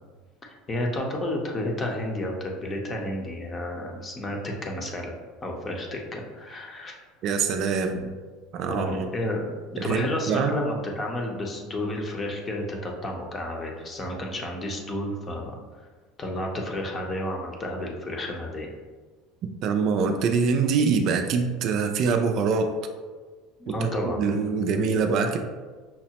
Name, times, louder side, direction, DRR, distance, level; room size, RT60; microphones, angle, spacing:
voice 1, 0.7-5.1 5.4-7.0 8.7-9.5 9.8-15.9 16.2-18.7 23.6-24.3, left 1 dB, 30° left, 1 dB, 0.7 m, -31 dB
voice 2, 7.2-8.1 8.5-9.1 9.8-10.5 19.6-22.7 23.7-23.9 24.2-25.4, right 5 dB, 55° right, 6 dB, 0.4 m, -24 dB
5.7 x 2.0 x 2.8 m, 1.4 s
supercardioid pair, 105°, 0 cm